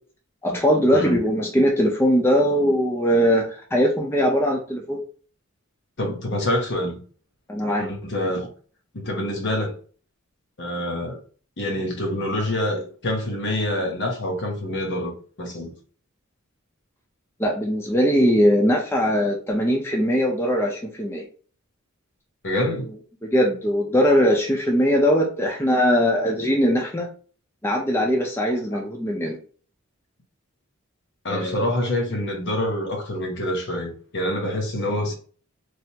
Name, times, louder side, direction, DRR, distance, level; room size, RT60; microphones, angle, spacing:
voice 1, 0.4-5.0 7.5-7.9 17.4-21.2 23.2-27.1 27.6-29.4 31.3-31.7, equal, 10° left, 0.5 m, -20 dB
voice 2, 6.0-7.0 7.8-8.5 8.9-9.8 10.6-11.2 11.6-15.1 15.4-15.7 22.4-22.9 28.7-28.8 31.2-35.1, left 1 dB, 55° left, 0.9 m, -26 dB
3.3 x 2.5 x 2.8 m
head